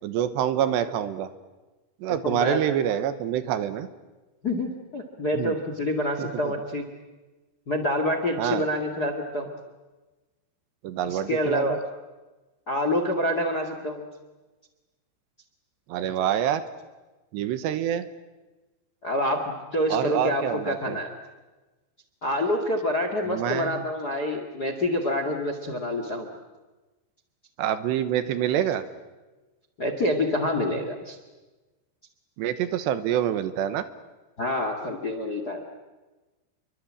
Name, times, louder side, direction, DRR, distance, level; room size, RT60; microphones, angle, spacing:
voice 1, 0.0-1.3 2.0-3.9 5.3-5.5 6.2-6.5 8.4-8.7 10.8-11.8 15.9-16.6 17.3-18.1 19.9-21.0 23.3-23.8 27.6-28.8 32.4-33.9, right 10 dB, 75° right, 12 dB, 3.2 m, -26 dB
voice 2, 2.2-2.6 4.4-6.8 7.7-9.5 11.0-11.8 12.7-14.0 19.0-21.1 22.2-26.3 29.8-31.2 34.4-35.6, left 1 dB, 35° left, 7 dB, 1.5 m, -27 dB
28.5 x 24.0 x 8.7 m, 1.2 s
omnidirectional pair, 5.3 m